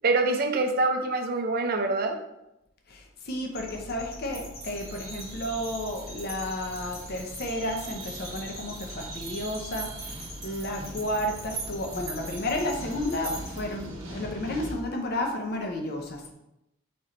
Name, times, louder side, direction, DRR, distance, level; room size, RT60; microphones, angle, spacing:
voice 1, 0.0-2.2, right 3 dB, 45° right, 5 dB, 0.5 m, -25 dB
voice 2, 2.9-16.3, left 1 dB, 45° left, 2 dB, 0.6 m, -32 dB
sound 1, 3.5-13.5, left 2 dB, 70° left, 0.9 m, -43 dB
sound 2, 4.2-13.8, right 5 dB, 20° right, 1.3 m, -44 dB
sound 3, 4.6-14.7, right 2 dB, 70° right, 0.9 m, -43 dB
4.3 x 3.1 x 3.7 m, 0.87 s
head